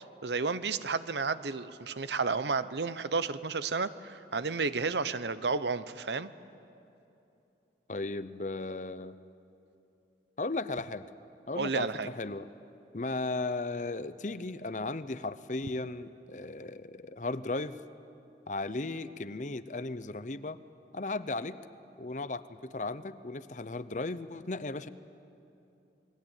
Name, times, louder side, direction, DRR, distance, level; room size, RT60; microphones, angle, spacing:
voice 1, 0.2-6.3 11.6-12.1, right 4 dB, 75° right, 14 dB, 0.8 m, -32 dB
voice 2, 7.9-9.2 10.4-11.1 11.5-12.5 12.9-17.8 18.5-20.6 20.9-21.6 22.0-24.9, left 2 dB, 45° left, 14 dB, 0.8 m, -36 dB
29.0 x 21.5 x 9.1 m, 2.8 s
head